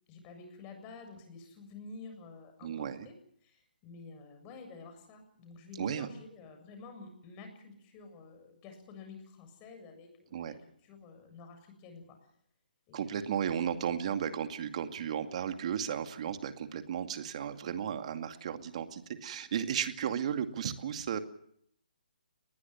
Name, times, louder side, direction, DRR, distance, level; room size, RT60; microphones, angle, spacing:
voice 1, 0.1-3.2 3.4-10.6 10.8-12.2 12.9-13.2, left 4 dB, 25° left, 6 dB, 7.3 m, -50 dB
voice 2, 2.6-3.1 5.8-6.1 10.3-10.6 12.9-21.2, right 8 dB, 45° right, 8 dB, 2.4 m, -34 dB
22.5 x 21.0 x 7.3 m, 0.68 s
figure-of-eight pair, 140°, 5 cm